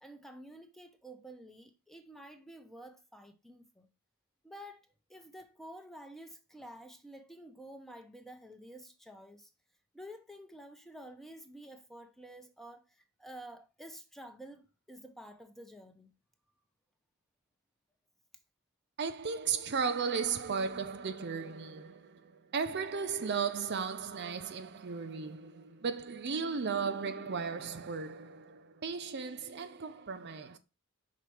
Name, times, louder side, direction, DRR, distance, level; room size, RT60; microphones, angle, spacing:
voice 1, 0.0-3.9 4.4-9.5 9.9-16.1, right 1 dB, ahead, 0.8 m, -50 dB
voice 2, 19.0-30.6, right 5 dB, 50° right, 0.6 m, -35 dB
5.9 x 4.1 x 4.7 m
head